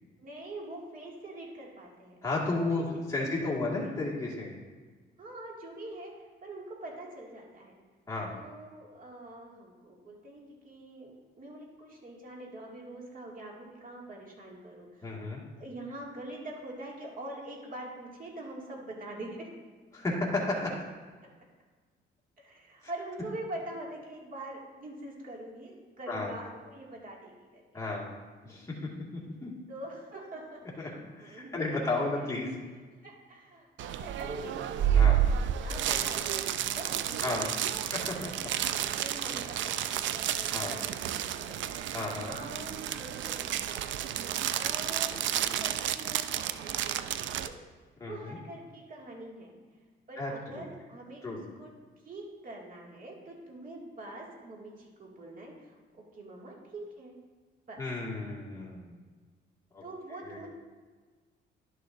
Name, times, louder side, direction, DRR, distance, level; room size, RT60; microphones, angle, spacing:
voice 1, 0.2-2.2 2.6-2.8 3.2-4.0 5.2-7.7 8.3-15.3 15.6-19.5 22.4-27.6 29.7-31.6 32.1-32.3 33.0-34.7 35.3-37.5 37.8-38.1 39.0-44.0 44.5-47.5 48.1-49.5 50.1-51.7 52.0-57.2 57.7-57.8 59.8-60.5, right 1 dB, 45° right, -2 dB, 2.3 m, -44 dB
voice 2, 2.2-2.8 3.1-4.6 8.1-8.3 15.0-15.4 19.9-20.7 26.1-26.3 27.7-28.1 28.4-28.7 29.4-29.5 30.8-30.9 31.2-32.5 34.9-35.2 37.2-37.7 38.2-38.3 40.5-40.7 41.9-42.4 48.0-48.4 50.2-50.6 51.2-51.4 57.8-59.0 59.7-59.8 60.3-60.4, left 2 dB, 15° left, -5 dB, 2.0 m, -33 dB
sound 1, 33.8-47.5, right 10 dB, 70° right, 0.4 m, -31 dB
11.0 x 6.6 x 2.7 m, 1.4 s
cardioid pair, 90°, 20 cm